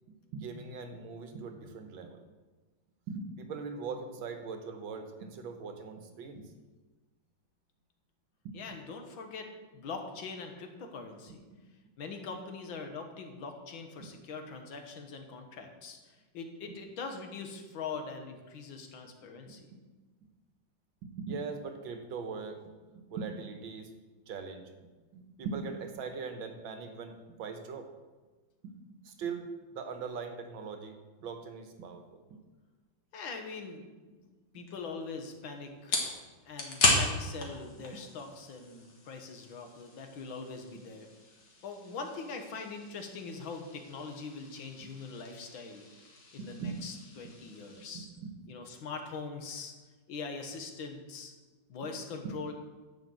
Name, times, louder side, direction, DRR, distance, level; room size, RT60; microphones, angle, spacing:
voice 1, 0.3-2.2 3.1-6.4 8.5-8.6 11.5-11.6 19.7-19.8 21.0-22.6 22.9-23.9 24.3-27.9 28.6-28.8 29.1-29.5 29.7-30.9 31.2-32.2 40.7-40.9 46.4-46.8 47.9-48.4, right 5 dB, 80° right, 6 dB, 1.8 m, -40 dB
voice 2, 8.5-9.5 9.7-11.4 12.0-19.6 33.1-33.9 34.5-36.0 36.5-41.1 41.6-45.9 46.3-48.1 48.5-49.7 50.1-51.3 51.7-52.5, left 4 dB, 85° left, 5 dB, 2.0 m, -42 dB
sound 1, 34.7-47.9, left 2 dB, 55° left, 2.1 m, -37 dB
10.5 x 5.2 x 7.7 m, 1.3 s
omnidirectional pair, 2.1 m